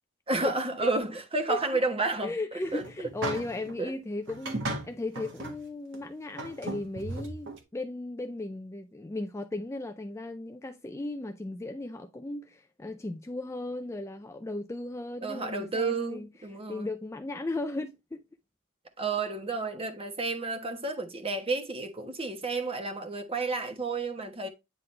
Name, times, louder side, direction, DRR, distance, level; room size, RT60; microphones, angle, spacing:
voice 1, 0.3-2.3 2.7-2.8 3.8-3.9 15.2-16.9 19.0-24.5, right 3 dB, 25° right, 1.2 m, -31 dB
voice 2, 2.2-16.3 16.7-18.2, left 2 dB, 10° left, 0.3 m, -36 dB
sound 1, 2.6-3.8 4.3-5.6 5.9-6.0 6.4-7.6, right 2 dB, 55° right, 1.5 m, -36 dB
9.2 x 3.8 x 3.2 m
head